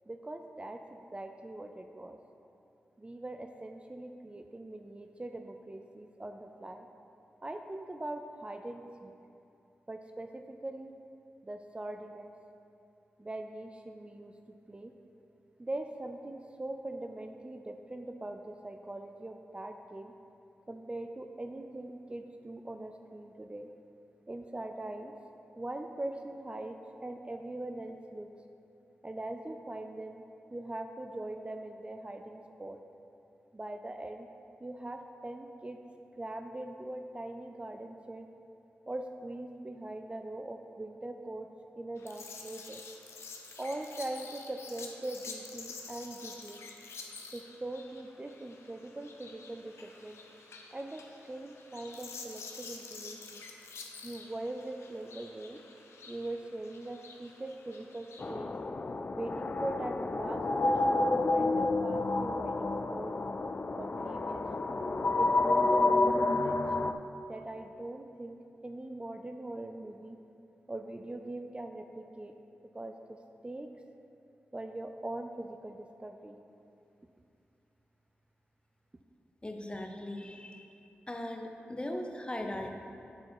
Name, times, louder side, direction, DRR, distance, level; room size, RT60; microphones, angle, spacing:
voice 1, 0.1-2.2 3.0-6.9 7.4-9.1 9.9-10.9 11.4-12.3 13.2-14.4 14.7-14.9 15.6-20.1 20.7-23.7 24.3-25.1 25.6-28.3 29.0-30.2 30.5-32.8 33.5-34.3 34.6-35.8 36.2-38.3 38.9-41.5 41.8-42.8 43.6-46.7 47.3-50.2 50.7-53.4 54.0-55.6 56.1-58.5 59.1-63.1 63.8-64.5 65.2-67.0 67.3-68.4 68.6-70.2 70.7-72.4 72.7-72.9 73.4-73.7 74.5-76.4, right 1 dB, 25° right, 5 dB, 0.4 m, -41 dB
sound 1, 42.0-58.3, left 4 dB, 85° left, 0.6 m, -49 dB
sound 2, 58.2-66.9, left 2 dB, 40° left, 0.4 m, -29 dB
voice 2, 79.4-80.7 81.1-82.7, left 1 dB, 25° left, 3 dB, 0.8 m, -39 dB
9.3 x 4.5 x 4.6 m, 2.7 s
cardioid pair, 45°, 4 cm